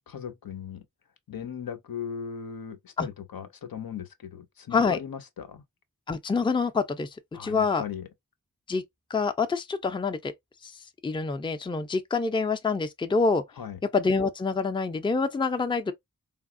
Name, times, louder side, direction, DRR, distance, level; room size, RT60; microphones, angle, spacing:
voice 1, 0.1-0.8 1.3-5.6 7.3-8.1 13.6-13.8, left 7 dB, 75° left, 0.6 m, -38 dB
voice 2, 6.1-7.8 8.7-8.8 9.1-10.3 10.6-10.7 11.0-13.4 13.9-15.9, left 4 dB, 15° left, 0.4 m, -26 dB
3.4 x 2.0 x 2.4 m
wide cardioid pair, 50°, 35 cm